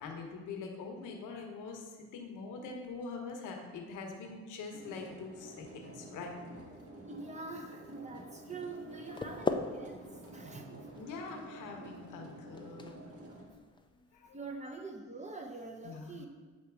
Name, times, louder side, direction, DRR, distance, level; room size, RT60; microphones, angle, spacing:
voice 1, 0.0-6.3 10.9-12.9 14.1-14.4 14.6-14.8 15.8-16.2, left 4 dB, 85° left, 2 dB, 1.0 m, -44 dB
sound 1, 4.7-13.4, right 2 dB, 50° right, 1.3 m, -50 dB
voice 2, 7.0-10.0 10.3-10.7 14.3-16.3, right 3 dB, 25° right, 2 dB, 0.7 m, -44 dB
sound 2, 8.9-14.8, left 3 dB, 15° left, 0.4 m, -41 dB
7.8 x 3.0 x 4.6 m, 1.4 s
cardioid pair, 90°, 30 cm